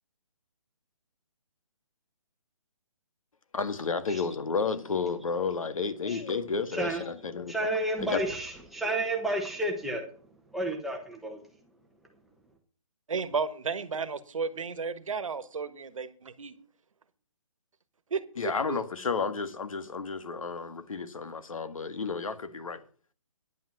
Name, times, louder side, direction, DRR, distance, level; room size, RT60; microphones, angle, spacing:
voice 1, 3.5-7.7 8.0-8.2 18.4-22.8, left 5 dB, 70° left, 1.8 m, -32 dB
voice 2, 6.7-7.0 7.5-10.0 10.5-11.4, right 1 dB, ahead, 1.1 m, -31 dB
voice 3, 13.1-16.5 18.1-18.8, right 5 dB, 65° right, 1.4 m, -33 dB
10.5 x 9.2 x 5.9 m
hypercardioid pair, 165°, 18 cm